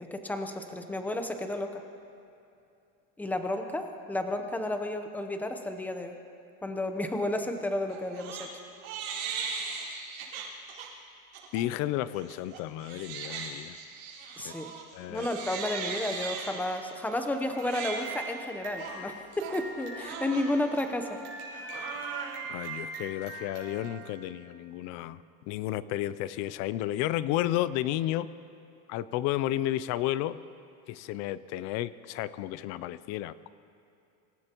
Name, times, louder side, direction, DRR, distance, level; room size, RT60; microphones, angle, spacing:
voice 1, 0.0-1.8 3.2-6.1 6.6-8.5 14.4-14.7 15.1-21.2, left 1 dB, 5° left, 6 dB, 0.8 m, -32 dB
Crying sobbing, 7.9-8.5 8.8-10.9 11.3-11.6 12.1-24.1, right 5 dB, 65° right, 4.7 m, -39 dB
voice 2, 11.5-13.8 14.4-14.5 14.9-15.3 22.5-28.3 28.9-30.4 30.9-33.5, left 14 dB, 40° left, 17 dB, 0.4 m, -32 dB
26.0 x 15.5 x 3.0 m, 2.6 s
supercardioid pair, 140°, 44 cm